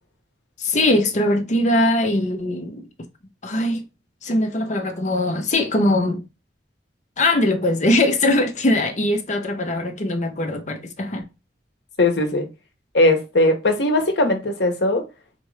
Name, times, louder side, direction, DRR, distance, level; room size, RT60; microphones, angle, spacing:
voice 1, 0.6-2.8 3.4-3.8 4.2-6.2 7.2-11.2, left 1 dB, 45° left, 0.8 m, -21 dB
voice 2, 12.0-12.5 12.9-15.0, left 1 dB, 80° left, 1.0 m, -19 dB
4.3 x 2.5 x 3.1 m
head